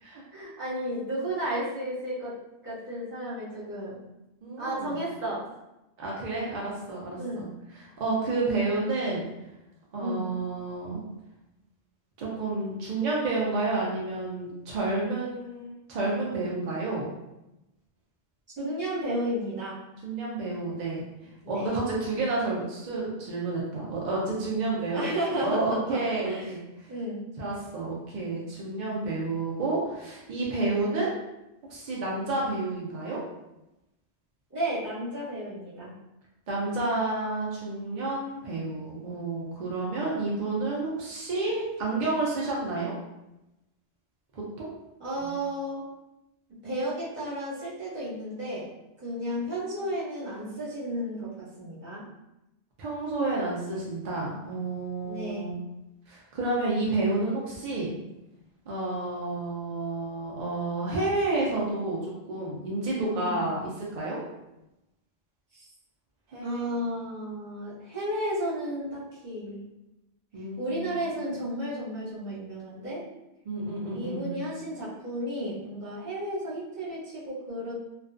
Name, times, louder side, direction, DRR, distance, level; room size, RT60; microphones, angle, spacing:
voice 1, 0.3-2.3 2.6-4.0 4.6-5.5 7.2-7.5 10.0-10.3 18.6-19.8 21.4-21.7 24.9-26.5 26.9-27.2 34.5-35.9 45.0-45.8 46.5-48.7 49.0-52.0 55.0-55.5 62.9-63.5 66.4-69.6 70.6-73.0 73.9-77.7, equal, 10° right, -10 dB, 0.9 m, -33 dB
voice 2, 4.4-5.0 6.0-7.5 7.7-9.3 9.9-11.0 12.2-17.1 20.0-21.0 21.5-25.1 25.4-26.6 27.4-31.1 31.7-33.2 36.5-42.9 44.3-44.7 45.2-45.3 52.8-55.5 56.1-57.9 58.7-64.2 66.3-66.6 70.3-71.1 73.5-74.3, right 2 dB, 55° right, -5 dB, 0.5 m, -30 dB
2.4 x 2.2 x 2.4 m, 0.93 s
omnidirectional pair, 1.2 m